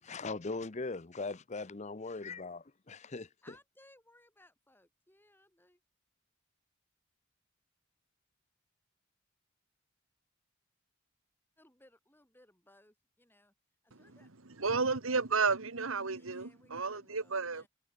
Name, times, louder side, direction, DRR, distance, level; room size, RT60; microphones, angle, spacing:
voice 1, 0.0-3.3, left 3 dB, 35° left, 0.7 m, -40 dB
voice 2, 2.0-2.5 3.4-5.8 11.6-13.5 13.8-14.3 16.1-17.7, left 1 dB, 10° left, 5.7 m, -64 dB
voice 3, 13.9-17.7, right 4 dB, 75° right, 1.6 m, -33 dB
head